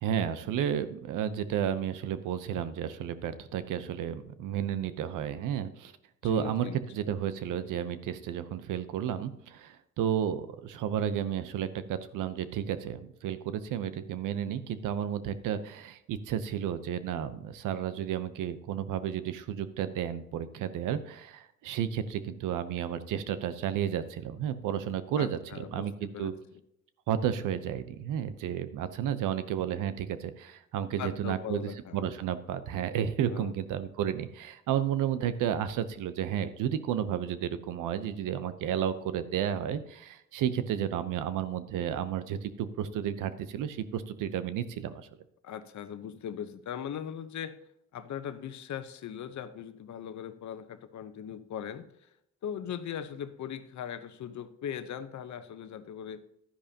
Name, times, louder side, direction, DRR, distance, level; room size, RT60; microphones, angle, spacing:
voice 1, 0.0-5.9 6.2-26.3 27.1-45.1, right 9 dB, 90° right, 13 dB, 0.8 m, -32 dB
voice 2, 6.2-7.1 25.2-26.3 31.0-32.0 33.3-33.5 45.4-47.6 47.9-51.8 52.4-56.2, left 9 dB, 65° left, 11 dB, 0.9 m, -39 dB
11.5 x 10.5 x 2.9 m, 0.80 s
cardioid pair, 80°, 31 cm